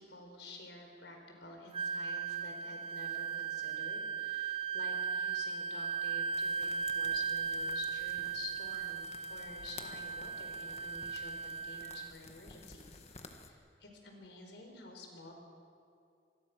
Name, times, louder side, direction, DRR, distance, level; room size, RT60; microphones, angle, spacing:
voice 1, 0.0-15.3, left 3 dB, 75° left, 2 dB, 4.5 m, -50 dB
Wind instrument woodwind instrument, 1.7-12.1, right 6 dB, 30° right, 0.5 m, -37 dB
sound 1, 6.3-13.5, left 4 dB, 35° left, 1.6 m, -54 dB
27.0 x 20.5 x 6.2 m, 2.5 s
head